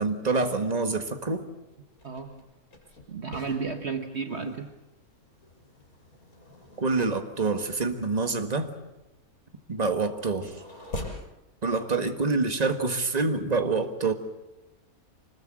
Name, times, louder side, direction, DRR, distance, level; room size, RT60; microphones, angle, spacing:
voice 1, 0.0-1.4 4.4-4.5 6.8-8.7 9.7-10.6 11.6-14.1, right 3 dB, 30° right, 6 dB, 1.7 m, -26 dB
sound 1, 1.7-11.3, left 1 dB, 80° left, 6.1 m, -45 dB
voice 2, 2.0-2.4 3.1-4.7, right 5 dB, 50° right, 5 dB, 1.4 m, -33 dB
25.0 x 20.5 x 7.6 m, 0.98 s
omnidirectional pair, 1.5 m